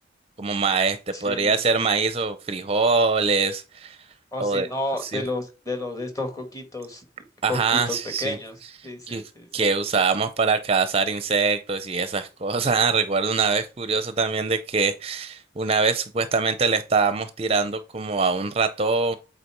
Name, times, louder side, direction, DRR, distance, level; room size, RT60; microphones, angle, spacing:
voice 1, 0.4-4.0 4.4-4.7 5.0-5.2 7.4-8.4 9.1-9.2 9.5-19.2, right 4 dB, 30° right, 0.5 m, -23 dB
voice 2, 1.1-1.6 4.3-7.0 7.4-8.6 8.8-9.8, left 2 dB, 20° left, 1.5 m, -32 dB
8.3 x 4.2 x 4.5 m
head